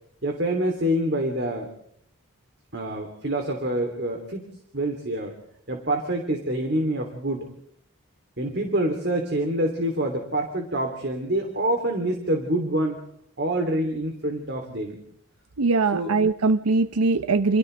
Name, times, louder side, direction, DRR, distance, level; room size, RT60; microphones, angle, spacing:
voice 1, 0.2-1.7 2.7-4.5 4.7-5.3 5.7-7.5 8.4-13.0 13.4-15.0 15.9-16.2, right 1 dB, 50° right, 3 dB, 3.1 m, -26 dB
voice 2, 15.6-17.6, right 3 dB, 90° right, 10 dB, 0.8 m, -21 dB
29.5 x 28.0 x 3.4 m, 0.66 s
head